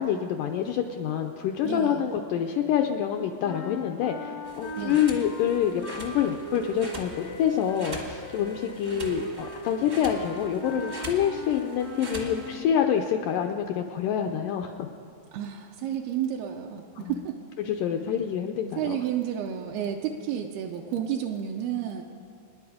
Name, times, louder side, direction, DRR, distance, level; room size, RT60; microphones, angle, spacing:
voice 1, 0.0-14.7 17.0-17.2 17.6-19.0, left 9 dB, 90° left, 4 dB, 1.9 m, -27 dB
voice 2, 1.6-2.0 4.8-5.0 15.3-17.4 18.8-22.0, right 9 dB, 80° right, 1 dB, 2.6 m, -31 dB
sound 1, 3.4-12.9, equal, 75° left, 0.8 m, -39 dB
sound 2, 4.4-12.5, right 1 dB, 50° right, 0.8 m, -42 dB
26.0 x 10.5 x 5.0 m, 2.3 s
omnidirectional pair, 4.5 m